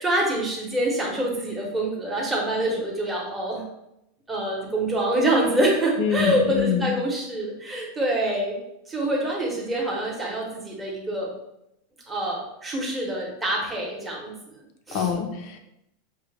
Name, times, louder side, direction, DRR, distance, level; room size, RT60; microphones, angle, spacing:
voice 1, 0.0-3.7 4.3-8.6 8.9-11.3 12.1-14.3 14.9-15.1, right 1 dB, 5° right, -3 dB, 0.8 m, -26 dB
voice 2, 6.0-6.9 14.9-15.6, left 7 dB, 45° left, 6 dB, 0.5 m, -25 dB
6.0 x 2.1 x 3.2 m, 0.83 s
supercardioid pair, 175°, 0 cm